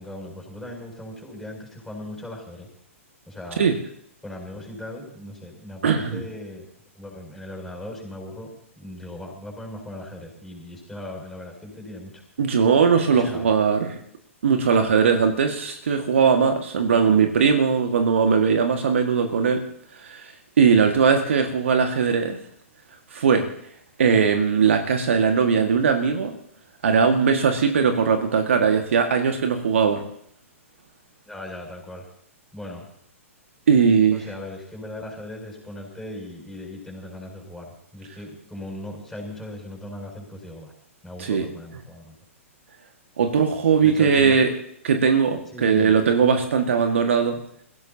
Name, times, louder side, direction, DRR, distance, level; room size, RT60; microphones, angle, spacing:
voice 1, 0.0-2.7 3.3-3.6 4.2-6.7 6.9-8.5 8.8-12.2 13.1-13.5 20.7-20.9 31.2-32.1 32.5-32.9 34.1-40.7 41.0-42.1 43.8-44.4 45.5-46.0, left 1 dB, 5° left, 0 dB, 6.9 m, -38 dB
voice 2, 5.8-6.2 12.4-13.9 14.4-19.6 20.0-22.4 23.1-23.5 24.0-26.4 26.8-30.0 33.7-34.2 41.2-41.4 43.2-44.5 44.8-47.4, right 6 dB, 60° right, 5 dB, 1.8 m, -19 dB
28.0 x 16.5 x 2.8 m, 0.68 s
figure-of-eight pair, 115°, 7 cm